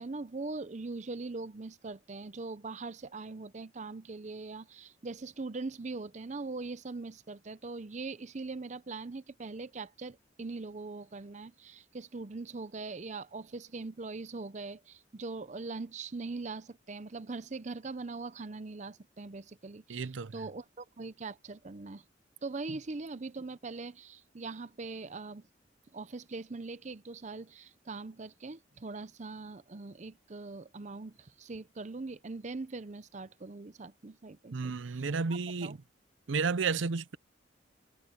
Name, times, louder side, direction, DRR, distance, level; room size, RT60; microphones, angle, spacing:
voice 1, 0.0-22.0 22.4-25.5 25.9-35.1 35.6-35.8, right 3 dB, 40° right, 0.6 m, -41 dB
voice 2, 19.9-20.3 34.5-35.8 36.3-37.2, right 4 dB, 85° right, 0.6 m, -32 dB
head